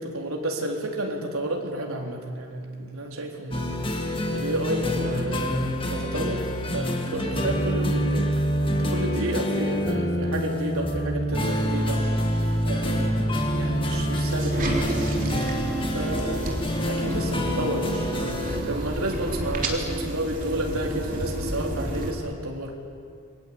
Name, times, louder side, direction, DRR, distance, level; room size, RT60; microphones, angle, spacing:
voice 1, 0.0-6.4 6.7-8.3 8.7-12.4 12.6-15.0 15.9-16.5 16.8-22.8, right 1 dB, 80° right, 0 dB, 4.0 m, -31 dB
sound 1, 3.5-18.6, equal, 25° left, 2.2 m, -26 dB
sound 2, 13.9-22.1, right 1 dB, 40° right, 3.4 m, -31 dB
29.0 x 22.0 x 8.7 m, 2.3 s
head